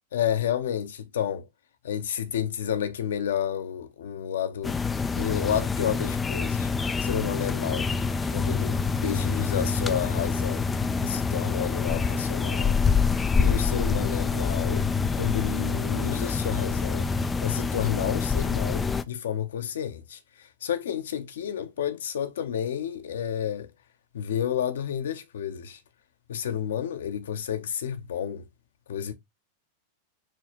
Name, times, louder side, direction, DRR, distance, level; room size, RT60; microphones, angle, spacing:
voice 1, 0.1-1.5 1.8-4.8 5.1-6.7 7.0-7.9 8.3-10.7 11.0-12.8 13.3-14.9 15.1-17.1 17.4-23.7 24.1-25.8 26.3-28.5 28.9-29.1, left 9 dB, 60° left, 0.8 m, -30 dB
sound 1, 4.6-19.0, left 5 dB, 15° left, 0.4 m, -26 dB
5.1 x 3.2 x 3.0 m
figure-of-eight pair, 90°, 0 cm